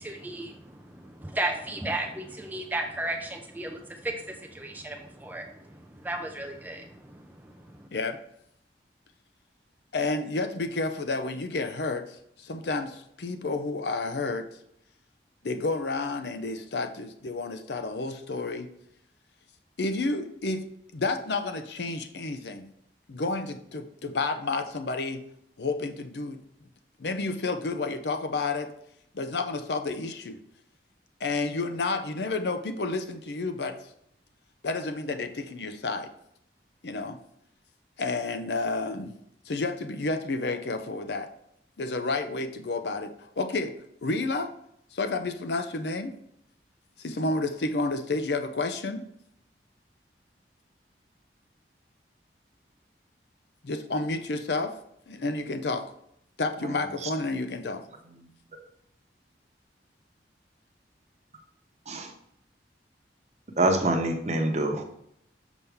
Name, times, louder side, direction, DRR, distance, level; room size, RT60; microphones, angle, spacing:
voice 1, 0.0-7.9, right 1 dB, 10° right, 3 dB, 0.4 m, -35 dB
voice 2, 9.9-14.5 15.4-18.7 19.8-20.7 20.9-22.7 23.1-25.2 25.6-26.4 27.0-28.7 29.1-30.4 31.2-33.8 34.6-36.1 36.8-37.2 38.0-39.2 39.5-41.3 41.8-43.7 44.0-44.5 44.9-46.1 47.0-49.0 53.6-54.7 55.1-55.9 56.4-57.8, left 3 dB, 70° left, 8 dB, 0.6 m, -30 dB
voice 3, 56.6-57.1 58.2-58.3 61.9-62.1 63.6-64.8, right 2 dB, 40° right, 3 dB, 0.9 m, -26 dB
6.1 x 5.5 x 3.5 m, 0.74 s
head